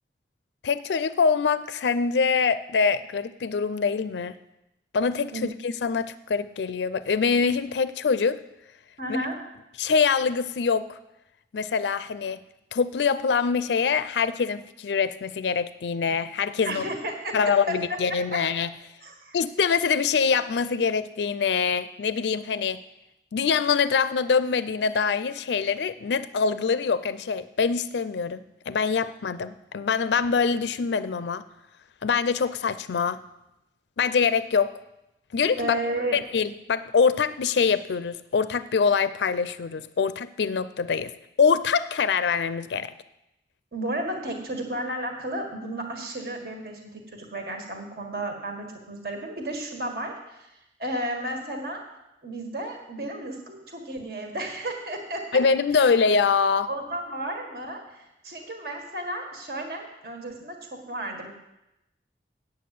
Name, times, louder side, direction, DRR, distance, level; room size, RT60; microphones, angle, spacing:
voice 1, 0.6-4.4 4.9-8.4 9.1-9.2 9.8-11.0 11.5-12.4 12.7-16.8 17.3-18.7 19.3-22.8 23.3-31.5 32.0-33.2 34.0-34.7 35.3-35.8 36.1-41.1 41.4-42.9 55.3-56.7, left 5 dB, 80° left, 14 dB, 0.4 m, -24 dB
voice 2, 9.0-9.4 16.6-17.4 17.7-18.2 19.0-19.4 35.6-36.2 43.7-50.5 50.8-51.8 52.2-55.3 55.7-55.9 56.7-61.3, right 1 dB, 60° right, 2 dB, 1.8 m, -33 dB
8.6 x 8.5 x 7.7 m, 0.91 s
head